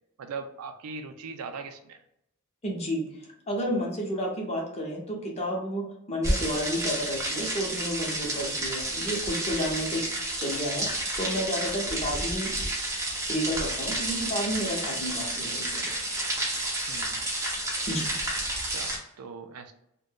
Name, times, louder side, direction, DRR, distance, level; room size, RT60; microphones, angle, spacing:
voice 1, 0.2-2.0 8.9-9.1 9.9-10.1 15.4-15.6 16.9-17.2 18.6-19.7, right 5 dB, 85° right, 8 dB, 0.4 m, -40 dB
voice 2, 2.6-10.1 10.4-12.5 13.3-15.9 17.9-18.1, equal, 30° left, -1 dB, 0.8 m, -31 dB
sound 1, 6.2-19.0, right 1 dB, 15° right, 0.6 m, -30 dB
2.5 x 2.2 x 3.5 m, 0.78 s
head